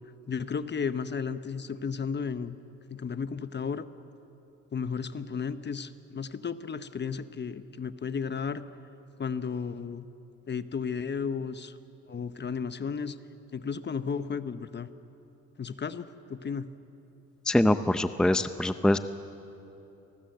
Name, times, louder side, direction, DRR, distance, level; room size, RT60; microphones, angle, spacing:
voice 1, 0.3-2.6 2.9-3.8 4.7-8.6 9.2-10.1 10.5-11.8 12.1-13.2 13.5-14.9 15.6-16.7, left 6 dB, 35° left, 12 dB, 1.0 m, -33 dB
voice 2, 17.5-19.0, left 1 dB, ahead, 10 dB, 0.7 m, -24 dB
27.5 x 19.5 x 8.0 m, 3.0 s
cardioid pair, 90°, 30 cm